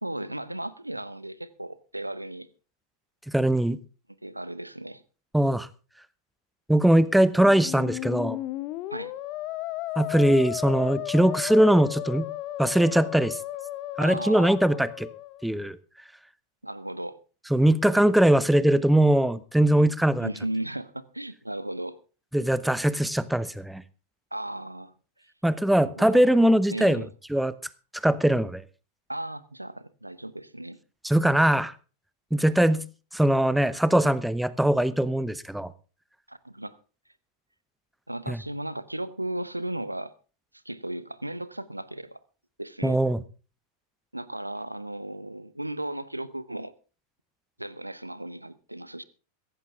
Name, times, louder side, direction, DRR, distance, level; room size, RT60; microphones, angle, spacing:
voice 1, 0.0-2.5 4.2-5.0 8.9-9.1 14.0-14.5 16.6-17.2 20.2-22.0 24.3-24.9 25.2-25.3 25.8-26.4 26.7-27.1 29.1-30.8 32.6-32.9 36.3-36.8 38.1-40.1 40.6-42.2 42.6-43.0 44.1-46.7 47.6-49.0, right 1 dB, 85° right, 0.9 m, -35 dB
voice 2, 3.3-3.8 5.3-5.7 6.7-8.4 10.0-12.3 12.6-13.4 14.0-15.1 15.4-15.8 17.5-20.3 22.3-23.8 25.4-27.0 27.3-27.5 28.0-28.6 31.0-31.7 32.3-32.8 33.1-35.7 38.3-38.4 42.8-43.2, right 1 dB, 5° right, 0.8 m, -21 dB
Musical instrument, 7.4-15.5, left 16 dB, 40° left, 0.9 m, -34 dB
16.5 x 14.5 x 3.6 m
figure-of-eight pair, 90°, 0 cm